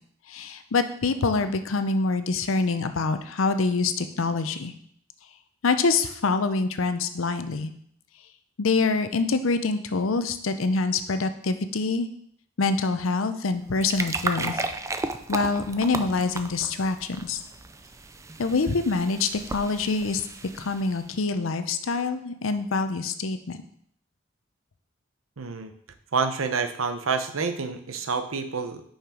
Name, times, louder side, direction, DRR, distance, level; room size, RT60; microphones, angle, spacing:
voice 1, 0.3-4.7 5.6-7.7 8.6-12.1 12.6-14.7 15.3-17.4 18.4-20.2 20.5-23.6, left 3 dB, 75° left, 10 dB, 0.6 m, -25 dB
sound 1, 13.5-21.1, right 3 dB, 15° right, 0.4 m, -35 dB
voice 2, 25.4-25.7 26.1-28.8, right 5 dB, 80° right, 8 dB, 0.8 m, -28 dB
5.7 x 5.6 x 5.0 m, 0.66 s
head